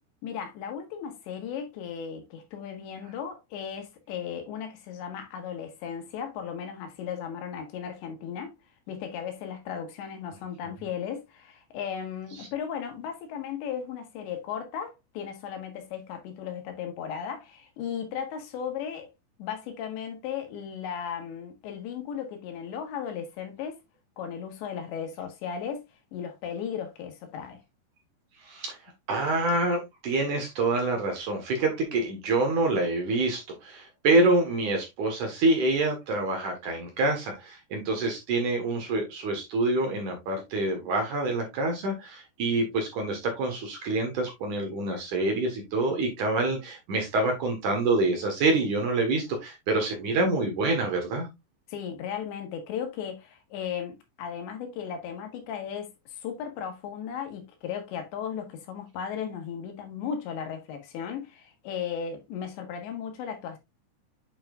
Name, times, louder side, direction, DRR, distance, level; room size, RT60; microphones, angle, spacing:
voice 1, 0.2-8.6 8.9-19.1 19.4-23.8 24.2-25.8 26.1-27.6 51.7-63.6, left 8 dB, 85° left, 3.9 m, -36 dB
voice 2, 28.4-28.8 29.1-51.3, right 2 dB, 60° right, 2.4 m, -26 dB
8.7 x 5.7 x 2.4 m
omnidirectional pair, 5.0 m